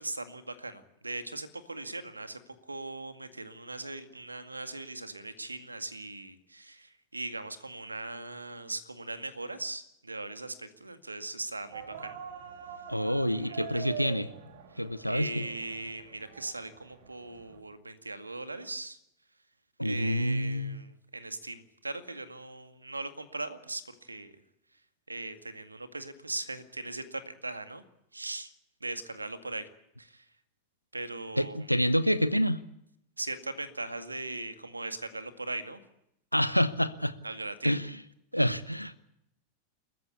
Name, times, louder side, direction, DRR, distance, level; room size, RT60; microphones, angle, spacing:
voice 1, 0.0-12.2 13.3-13.9 14.7-14.8 15.1-19.0 19.8-24.3 25.1-27.8 28.1-28.5 28.8-29.7 30.0-30.3 30.9-31.7 33.2-35.8 37.2-37.8, right 2 dB, 80° right, 9 dB, 2.1 m, -39 dB
sound 1, 11.7-17.6, right 8 dB, 60° right, 2.8 m, -44 dB
voice 2, 12.9-14.3 14.8-15.5 19.8-20.8 31.4-32.6 36.3-37.1 37.6-37.9 38.3-39.0, equal, 90° left, 15 dB, 1.0 m, -27 dB
28.5 x 15.0 x 8.4 m, 0.78 s
figure-of-eight pair, 90°, 0 cm